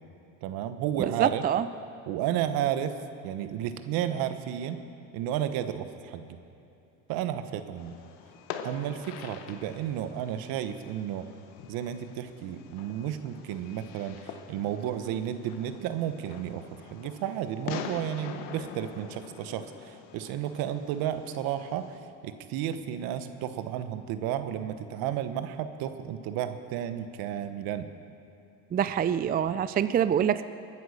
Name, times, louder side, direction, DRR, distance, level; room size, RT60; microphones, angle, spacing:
voice 1, 0.4-1.4 2.1-3.0 3.2-4.8 5.1-6.4 7.1-8.0 8.6-11.3 11.7-27.9, right 10 dB, 70° right, 10 dB, 1.2 m, -32 dB
voice 2, 1.2-1.6 28.7-30.4, right 9 dB, 25° right, 13 dB, 0.4 m, -25 dB
Fireworks, 7.8-22.0, left 8 dB, 75° left, 1.4 m, -44 dB
22.5 x 9.3 x 6.6 m, 2.7 s
supercardioid pair, 95°, 37 cm